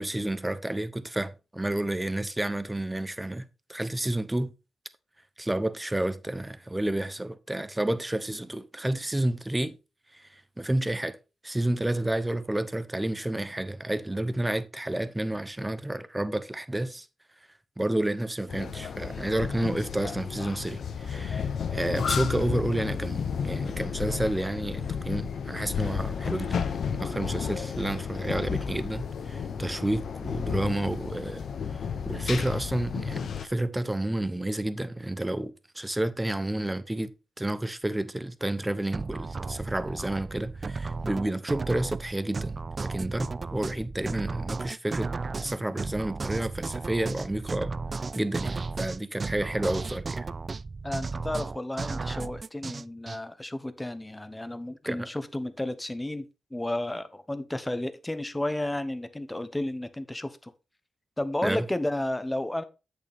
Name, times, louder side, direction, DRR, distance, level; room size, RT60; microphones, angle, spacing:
voice 1, 0.0-4.5 5.4-9.8 10.1-10.3 10.6-11.2 11.4-17.1 17.8-31.4 32.1-37.1 37.4-47.7 48.1-50.3 54.9-55.1 61.4-61.6, right 1 dB, 15° right, 0.8 m, -30 dB
sound 1, 18.5-33.5, left 7 dB, 70° left, 0.8 m, -32 dB
sound 2, 38.9-53.2, right 4 dB, 40° right, 0.3 m, -34 dB
voice 2, 50.8-56.3 56.5-60.5 61.2-62.6, left 1 dB, 15° left, 0.9 m, -32 dB
8.2 x 6.5 x 3.5 m
cardioid pair, 70°, 0 cm